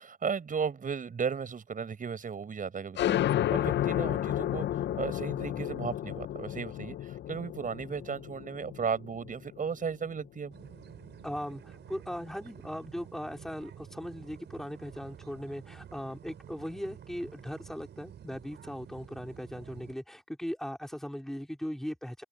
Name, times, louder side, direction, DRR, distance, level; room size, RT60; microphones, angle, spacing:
voice 1, 0.0-10.5, right 6 dB, 40° right, 7.3 m, -35 dB
sound 1, 3.0-10.2, left 12 dB, 60° left, 0.6 m, -32 dB
sound 2, 10.5-20.0, right 9 dB, 60° right, 6.0 m, -50 dB
voice 2, 11.2-22.2, equal, ahead, 4.2 m, -39 dB
cardioid pair, 90°, 20 cm